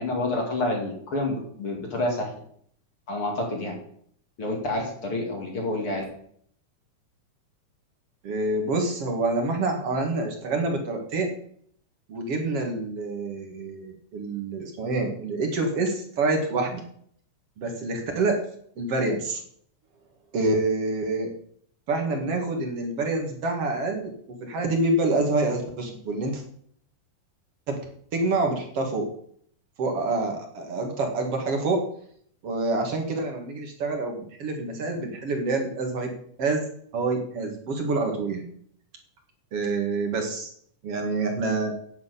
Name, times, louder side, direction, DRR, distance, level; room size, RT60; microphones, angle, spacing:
voice 1, 0.0-2.3 3.1-3.7 4.4-6.0, left 2 dB, 45° left, 0 dB, 3.3 m, -28 dB
voice 2, 8.2-11.3 12.1-16.8 17.6-18.4 18.8-19.4 20.3-21.3 21.9-24.1 24.4-26.4 27.7-27.8 28.1-29.1 29.8-31.8 32.4-36.1 36.4-36.7 36.9-38.4 39.5-40.5 40.8-41.7, right 2 dB, 50° right, 3 dB, 2.9 m, -27 dB
10.5 x 6.9 x 8.4 m, 0.63 s
omnidirectional pair, 3.7 m